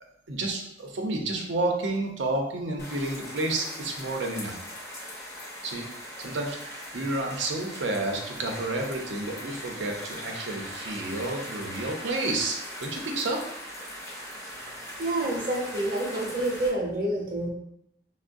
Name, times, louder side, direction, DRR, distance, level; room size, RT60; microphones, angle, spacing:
voice 1, 0.3-4.6 5.6-13.4, right 2 dB, 90° right, 2 dB, 0.6 m, -30 dB
sound 1, 2.8-16.7, equal, 15° left, 0.5 m, -40 dB
voice 2, 15.0-17.5, right 1 dB, 50° right, -1 dB, 0.6 m, -28 dB
4.5 x 2.0 x 2.5 m, 0.77 s
head